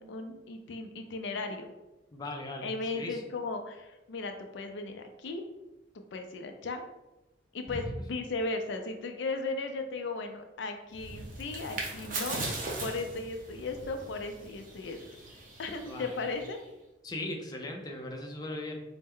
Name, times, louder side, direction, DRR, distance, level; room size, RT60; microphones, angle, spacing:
voice 1, 0.0-1.7 2.6-5.4 6.1-6.8 7.5-15.0 15.6-16.6, left 3 dB, 80° left, 6 dB, 0.4 m, -36 dB
voice 2, 2.1-3.2 7.7-7.9 15.9-16.2 17.0-18.8, left 1 dB, 20° left, 1 dB, 0.4 m, -38 dB
sound 1, 10.9-16.7, right 2 dB, 50° right, 0.7 m, -40 dB
4.2 x 2.0 x 3.6 m, 1.0 s
head